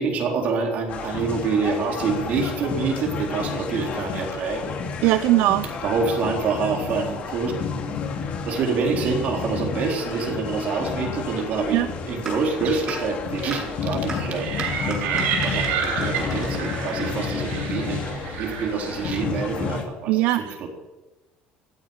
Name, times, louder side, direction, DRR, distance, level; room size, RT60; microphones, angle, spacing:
voice 1, 0.0-4.8 5.8-7.6 8.5-18.0 18.4-20.7, right 4 dB, 50° right, 0 dB, 4.0 m, -26 dB
sound 1, 0.9-19.8, left 5 dB, 45° left, 2.5 m, -31 dB
voice 2, 5.0-5.7 11.7-11.9 20.1-20.7, right 15 dB, 75° right, 10 dB, 0.8 m, -20 dB
sound 2, 12.3-12.4 12.9-13.0 13.5-13.6 14.1-14.2 14.6-17.5, right 2 dB, 20° right, 6.8 m, -34 dB
sound 3, 14.3-19.2, right 7 dB, 90° right, 5.3 m, -29 dB
16.0 x 9.5 x 8.8 m, 1.1 s
cardioid pair, 155°, 3 cm